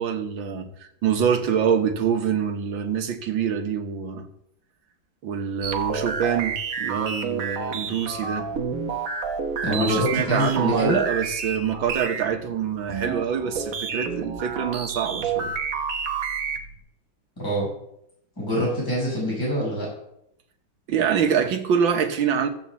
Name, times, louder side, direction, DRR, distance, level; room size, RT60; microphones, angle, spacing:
voice 1, 0.0-4.3 5.2-8.5 9.7-15.5 20.9-22.5, right 7 dB, 80° right, 2.0 m, -25 dB
sound 1, 5.6-16.8, right 6 dB, 50° right, 1.3 m, -30 dB
voice 2, 9.6-11.0 17.4-17.7 18.4-19.9, equal, 10° left, 5.5 m, -25 dB
14.0 x 5.4 x 7.3 m
omnidirectional pair, 2.1 m